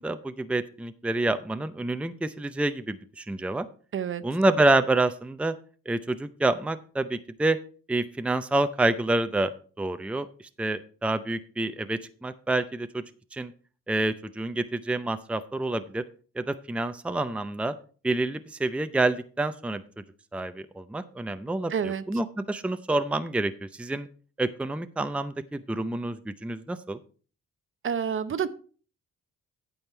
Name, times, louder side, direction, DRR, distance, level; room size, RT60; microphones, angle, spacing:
voice 1, 0.0-3.7 4.2-5.5 5.9-7.6 7.9-9.5 9.8-10.3 10.6-13.0 13.3-13.5 13.9-16.0 16.4-17.7 18.0-19.8 20.3-24.1 24.4-27.0, right 2 dB, 5° right, 0.6 m, -28 dB
voice 2, 21.7-22.0 27.8-28.5, right 7 dB, 45° right, 0.7 m, -28 dB
9.0 x 7.9 x 4.4 m
cardioid pair, 90°, 30 cm